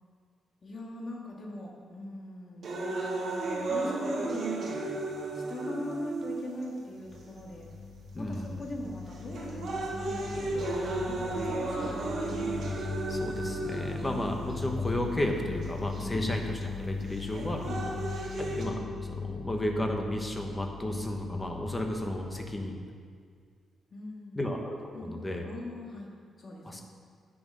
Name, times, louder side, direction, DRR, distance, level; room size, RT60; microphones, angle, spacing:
voice 1, 0.6-2.7 3.6-4.8 5.3-7.7 8.2-12.4 17.7-18.1 23.9-24.4 24.9-25.1 25.4-26.1 26.4-26.8, left 1 dB, 35° left, -1 dB, 1.9 m, -41 dB
sound 1, 2.6-6.6 7.4-7.5 8.3-8.6 9.1-14.6 15.6-15.7 17.1-18.6, right 2 dB, 45° right, 2.0 m, -34 dB
sound 2, 7.1-22.6, left 4 dB, 75° left, 2.9 m, -39 dB
voice 2, 8.1-8.6 13.1-17.7 18.4-22.8 24.3-25.4 26.6-26.8, left 1 dB, 15° left, 2 dB, 1.1 m, -33 dB
sound 3, 10.2-16.8, right 1 dB, 25° right, 1.9 m, -50 dB
9.2 x 8.8 x 6.5 m, 2.1 s
wide cardioid pair, 170°, 0 cm